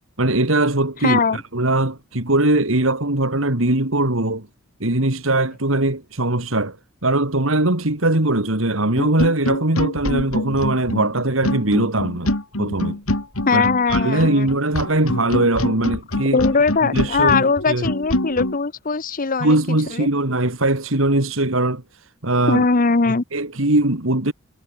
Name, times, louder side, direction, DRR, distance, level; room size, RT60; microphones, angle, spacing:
voice 1, 0.2-4.5 4.8-6.8 7.0-12.3 12.6-13.0 13.5-16.4 16.8-17.9 19.4-22.6 23.1-24.3, right 2 dB, 65° right, 3.0 m, -20 dB
voice 2, 1.0-1.4 13.5-14.6 16.3-20.1 22.5-23.2, left 4 dB, 40° left, 0.9 m, -20 dB
sound 1, 9.0-18.6, left 1 dB, 90° left, 3.8 m, -25 dB
head